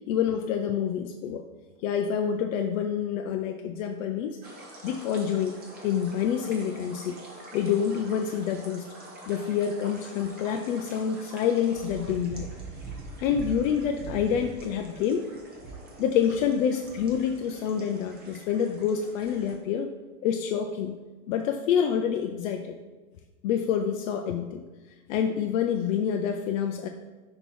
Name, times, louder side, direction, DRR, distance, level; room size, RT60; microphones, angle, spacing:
voice 1, 0.1-1.4 1.8-4.4 4.8-5.6 5.8-7.2 7.5-8.9 9.3-12.5 13.2-15.3 16.0-19.9 20.2-21.0 21.3-22.8 23.4-24.6 25.1-26.9, left 8 dB, 60° left, 4 dB, 0.5 m, -27 dB
sound 1, 4.4-19.5, right 3 dB, 20° right, 1.0 m, -44 dB
6.0 x 3.0 x 5.3 m, 1.3 s
supercardioid pair, 155°, 45 cm